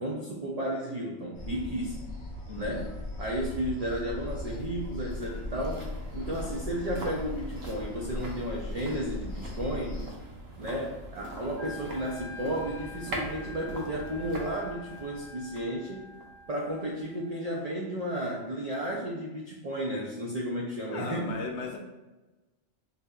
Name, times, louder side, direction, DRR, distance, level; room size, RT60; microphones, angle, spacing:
voice 1, 0.0-2.1 2.6-2.9 3.2-5.9 6.1-10.0 10.6-16.0 16.5-21.2, equal, 80° right, -3 dB, 0.3 m, -33 dB
sound 1, 1.3-10.1, left 1 dB, 25° left, 0.8 m, -38 dB
voice 2, 2.5-2.9 20.9-21.8, left 3 dB, 70° left, 2 dB, 0.8 m, -36 dB
sound 2, 3.9-17.1 17.4-17.5, right 1 dB, 60° right, 0.8 m, -43 dB
Wind instrument woodwind instrument, 11.6-17.6, left 3 dB, ahead, 0.3 m, -47 dB
4.0 x 2.6 x 2.3 m, 1.1 s
omnidirectional pair, 1.3 m